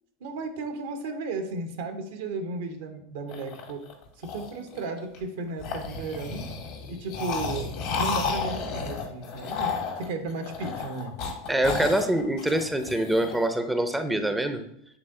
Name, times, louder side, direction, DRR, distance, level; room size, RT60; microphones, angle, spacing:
voice 1, 0.2-3.9 4.2-6.5 6.9-9.7 10.0-11.2, right 3 dB, 70° right, 7 dB, 0.9 m, -34 dB
sound 1, 3.3-5.2 5.6-13.4, left 4 dB, 60° left, 1.6 m, -33 dB
voice 2, 11.5-14.6, right 1 dB, 5° right, 8 dB, 0.7 m, -25 dB
7.9 x 3.6 x 3.8 m, 0.72 s
hypercardioid pair, 90°, 0 cm